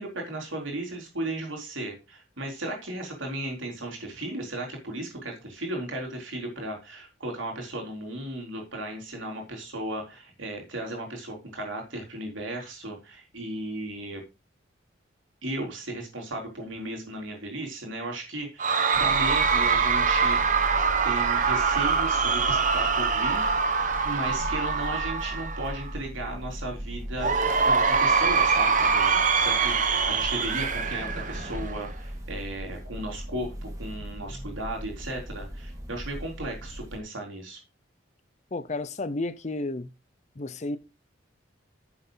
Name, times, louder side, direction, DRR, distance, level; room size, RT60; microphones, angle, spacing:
voice 1, 0.0-14.2 15.4-20.4 21.0-37.6, right 1 dB, 75° right, 3.8 m, -35 dB
Cheering / Crowd, 18.6-25.9 27.2-31.9, right 5 dB, 40° right, 1.1 m, -24 dB
sound 1, 18.9-37.0, equal, 15° right, 2.0 m, -38 dB
voice 2, 38.5-39.9 40.4-40.8, left 2 dB, 35° left, 0.6 m, -32 dB
10.0 x 7.2 x 3.9 m
head